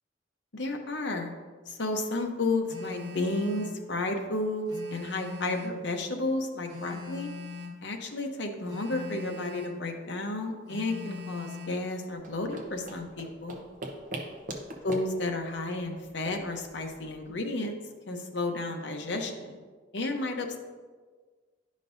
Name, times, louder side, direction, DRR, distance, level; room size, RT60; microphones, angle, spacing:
voice 1, 0.5-1.3 1.7-7.3 7.8-13.6 14.8-17.8 18.1-19.6 19.9-20.6, left 2 dB, 70° left, 3 dB, 0.8 m, -32 dB
Telephone, 2.7-3.8 4.7-5.8 6.7-7.8 8.7-9.8 10.7-11.8, left 4 dB, 65° right, 2.1 m, -40 dB
sound 1, 12.2-17.3, right 1 dB, 45° right, 0.8 m, -42 dB
11.0 x 5.2 x 2.6 m, 1.5 s
head